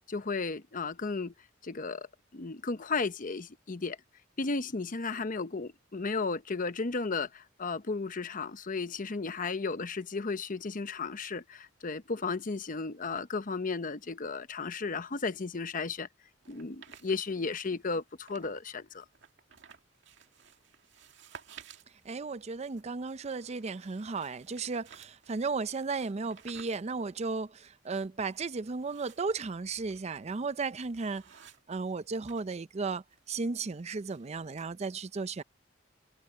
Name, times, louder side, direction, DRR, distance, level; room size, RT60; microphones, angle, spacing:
voice 1, 0.1-1.3 1.6-2.1 2.3-4.0 4.4-16.1 16.5-19.0, left 4 dB, 45° left, 0.9 m, -34 dB
sound 1, 16.4-18.7 19.0-32.5 32.8-34.7, right 7 dB, 70° right, 2.2 m, -56 dB
voice 2, 22.1-31.2 31.7-35.4, right 4 dB, 35° right, 0.5 m, -35 dB
head